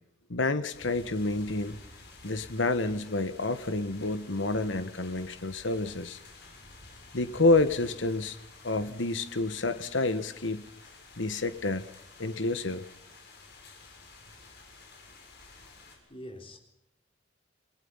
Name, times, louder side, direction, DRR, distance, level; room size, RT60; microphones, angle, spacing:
voice 1, 0.3-1.8 2.2-6.2 7.1-8.4 8.6-10.6 11.2-11.8 12.2-12.8, left 2 dB, 80° left, 1.4 m, -28 dB
sound 1, 0.7-16.0, left 3 dB, 55° left, 6.3 m, -51 dB
voice 2, 15.6-16.6, equal, 30° left, 3.8 m, -46 dB
29.0 x 19.5 x 5.6 m
head